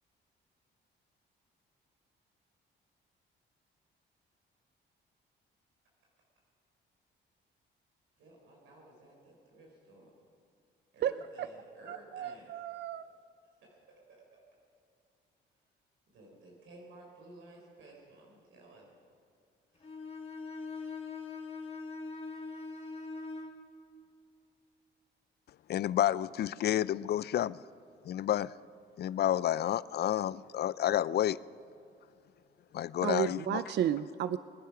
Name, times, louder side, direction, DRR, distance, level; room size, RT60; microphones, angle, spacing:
voice 1, 8.2-10.1 10.9-12.5 13.6-13.8 14.1-14.4 16.1-18.9 19.7-19.9, right 2 dB, 80° right, 4.0 m, -55 dB
voice 2, 11.9-13.0 33.0-34.4, right 10 dB, 60° right, 0.5 m, -32 dB
Bowed string instrument, 19.8-23.6, left 4 dB, 30° left, 2.2 m, -42 dB
voice 3, 25.7-27.6 28.0-28.5 29.0-31.4 32.7-33.6, left 11 dB, 55° left, 0.4 m, -30 dB
22.5 x 10.5 x 5.9 m
cardioid pair, 90°, 20 cm